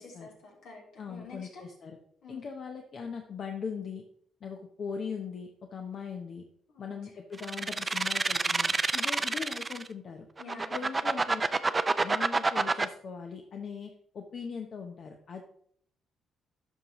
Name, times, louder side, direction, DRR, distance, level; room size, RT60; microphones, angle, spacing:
voice 1, 0.0-1.6 2.2-2.4 6.7-7.0 10.4-11.1, left 3 dB, 80° left, -3 dB, 3.2 m, -49 dB
voice 2, 1.0-2.0 2.3-4.0 4.4-6.4 6.8-10.3 10.7-11.7 12.0-15.4, left 6 dB, 55° left, 3 dB, 0.7 m, -40 dB
sound 1, 7.4-9.9 10.4-12.9, right 3 dB, 25° right, 0.4 m, -27 dB
11.5 x 5.6 x 3.0 m, 0.65 s
cardioid pair, 90°, 0 cm